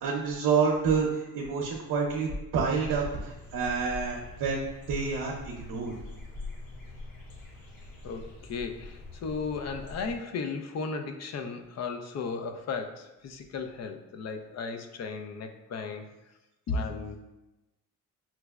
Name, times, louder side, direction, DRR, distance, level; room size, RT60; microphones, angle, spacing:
voice 1, 0.0-5.9, right 5 dB, 70° right, -2 dB, 0.7 m, -28 dB
sound 1, 2.7-10.2, left 2 dB, 75° left, 0.8 m, -44 dB
voice 2, 8.0-16.1 16.7-17.2, left 4 dB, 50° left, 6 dB, 0.5 m, -35 dB
5.7 x 2.0 x 2.3 m, 0.99 s
cardioid pair, 80°, 35 cm